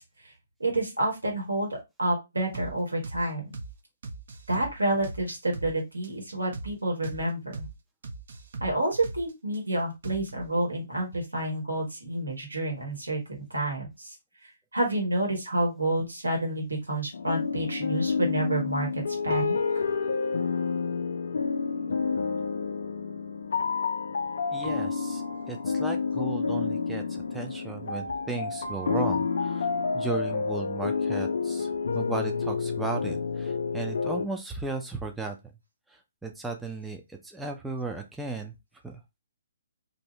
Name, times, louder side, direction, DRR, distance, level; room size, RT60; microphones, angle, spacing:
voice 1, 0.6-3.5 4.5-7.6 8.6-13.2 13.5-14.1 14.7-19.6, right 1 dB, 75° right, 0 dB, 1.5 m, -29 dB
sound 1, 2.5-2.7 3.0-3.2 3.5-3.7 4.0-5.7 6.0-6.1 6.5-6.7 7.0-7.2 7.5-7.7 8.0-9.6 10.0-10.5, right 3 dB, 55° right, 0.6 m, -39 dB
sound 2, 17.1-34.3, left 5 dB, 60° left, 0.4 m, -29 dB
voice 2, 24.5-35.4 35.9-38.5 38.8-39.0, right 3 dB, 5° right, 2 dB, 0.4 m, -35 dB
2.6 x 2.6 x 3.2 m, 0.23 s
figure-of-eight pair, 125°, 0 cm